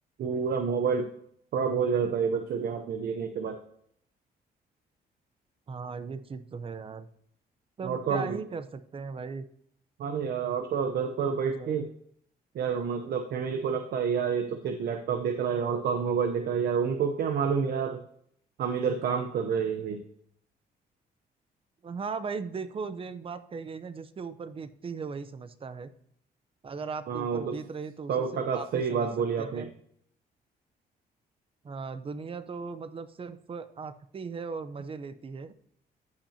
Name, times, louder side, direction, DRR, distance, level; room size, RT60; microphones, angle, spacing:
voice 1, 0.2-1.1 1.5-3.6 7.8-8.4 10.0-11.8 12.5-18.0 18.6-20.0 27.1-27.5 28.1-29.7, right 6 dB, 65° right, 6 dB, 0.8 m, -28 dB
voice 2, 5.7-7.1 7.8-9.4 11.4-11.8 21.8-25.9 26.6-29.8 31.6-35.5, right 5 dB, 30° right, 11 dB, 0.7 m, -38 dB
14.0 x 5.9 x 2.8 m, 0.68 s
cardioid pair, 105°, 17 cm